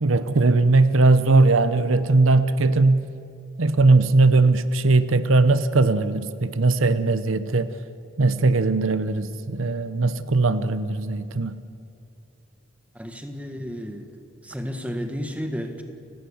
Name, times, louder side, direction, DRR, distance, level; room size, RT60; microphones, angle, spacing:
voice 1, 0.0-3.0 3.6-7.7 8.2-11.6, right 3 dB, 80° right, 13 dB, 0.8 m, -19 dB
voice 2, 13.0-14.1 14.4-15.8, equal, 5° right, 5 dB, 1.7 m, -32 dB
29.5 x 17.0 x 7.2 m, 2.6 s
head